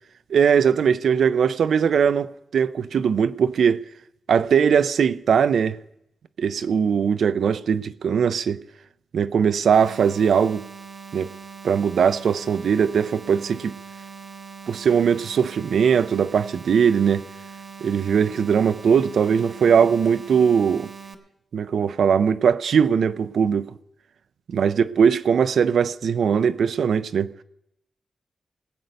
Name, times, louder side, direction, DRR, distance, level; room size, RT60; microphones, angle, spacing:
voice 1, 0.3-3.8 4.3-5.8 6.4-8.6 9.1-10.6 11.1-11.3 11.6-13.7 14.7-17.2 17.8-20.9 21.5-23.7 24.5-27.3, right 7 dB, 75° right, 0.4 m, -20 dB
sound 1, 9.7-21.1, right 5 dB, 40° right, 0.9 m, -41 dB
19.5 x 8.1 x 5.2 m
wide cardioid pair, 180°, 0 cm